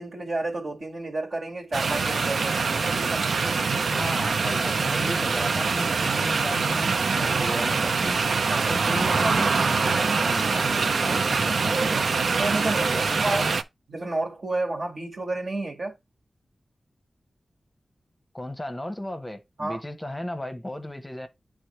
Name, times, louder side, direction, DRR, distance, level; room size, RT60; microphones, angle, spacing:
voice 1, 0.0-3.6 8.5-8.7 12.4-12.8 13.2-13.4 13.9-16.0 19.6-19.8, right 2 dB, 60° right, 1.7 m, -31 dB
sound 1, 1.7-13.6, right 4 dB, 90° right, 0.4 m, -24 dB
voice 2, 3.9-8.2 8.7-12.1 12.6-13.6 18.3-21.3, left 1 dB, 15° left, 0.8 m, -34 dB
9.5 x 3.5 x 3.1 m
wide cardioid pair, 110°, 0 cm